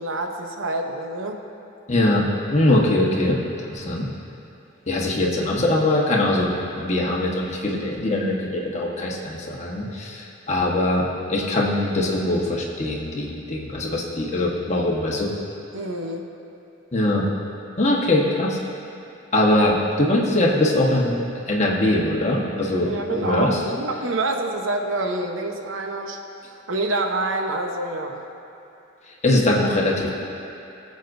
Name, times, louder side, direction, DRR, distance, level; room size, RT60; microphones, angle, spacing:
voice 1, 0.0-1.4 15.7-16.3 22.9-26.2 26.5-28.2, right 2 dB, 85° right, 3 dB, 0.9 m, -27 dB
voice 2, 1.9-3.4 3.7-4.1 4.9-15.3 16.9-17.3 17.8-18.6 19.3-21.2 21.5-23.6 29.2-30.1, left 1 dB, 35° left, -3 dB, 1.3 m, -22 dB
21.5 x 7.5 x 2.7 m, 2.8 s
head